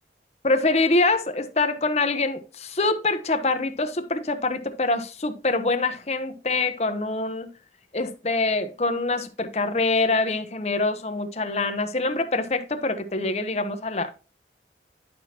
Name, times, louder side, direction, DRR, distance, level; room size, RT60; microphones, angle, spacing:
voice 1, 0.4-7.5 7.9-14.1, left 3 dB, 35° left, 0.8 m, -25 dB
10.5 x 5.9 x 2.9 m
head